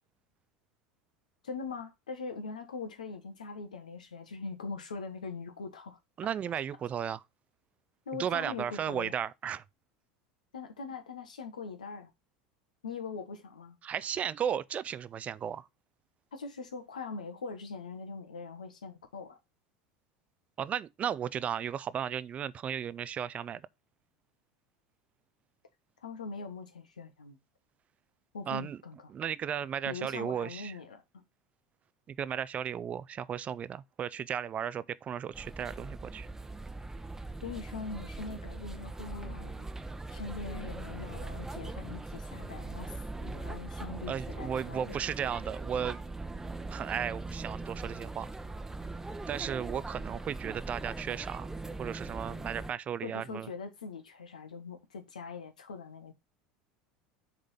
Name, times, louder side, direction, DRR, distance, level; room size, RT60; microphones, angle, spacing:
voice 1, 1.4-6.0 8.0-9.2 10.5-12.1 12.8-13.8 16.3-19.4 26.0-27.4 28.3-29.0 29.8-31.0 37.4-39.7 40.1-45.0 53.0-56.1, left 4 dB, 90° left, 1.4 m, -42 dB
voice 2, 6.2-7.2 8.1-9.6 13.8-15.7 20.6-23.6 28.5-28.8 29.1-30.7 32.1-36.3 44.1-46.0 46.7-48.3 49.3-51.5 51.8-53.5, right 8 dB, 35° right, 0.5 m, -35 dB
sound 1, 35.3-52.7, right 2 dB, 10° right, 0.9 m, -41 dB
6.7 x 3.8 x 5.7 m
hypercardioid pair, 85°, 4 cm